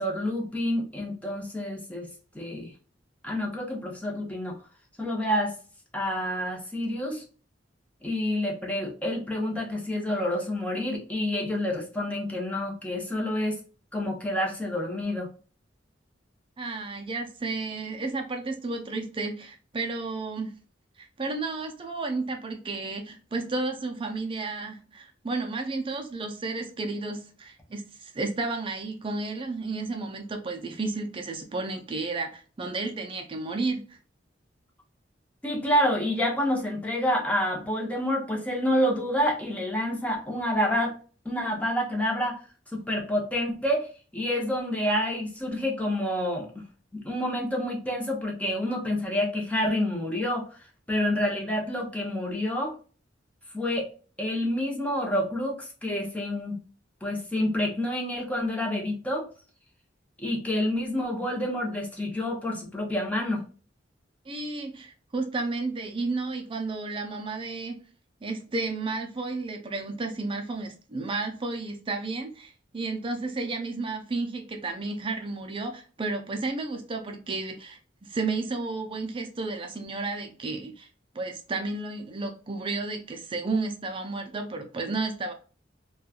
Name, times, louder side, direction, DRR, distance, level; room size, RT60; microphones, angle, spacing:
voice 1, 0.0-2.7 3.2-4.6 5.0-5.5 5.9-7.2 8.0-13.6 13.9-15.3 35.4-41.0 41.2-42.4 42.7-43.9 44.1-46.6 46.9-50.5 50.9-52.7 53.5-53.9 54.2-56.6 57.0-59.3 60.2-63.4, left 1 dB, 10° left, -1 dB, 0.8 m, -28 dB
voice 2, 16.6-20.5 21.0-34.0 64.3-67.8 68.2-80.9 81.1-85.3, right 3 dB, 30° right, 4 dB, 0.4 m, -32 dB
3.0 x 2.3 x 2.3 m, 0.38 s
head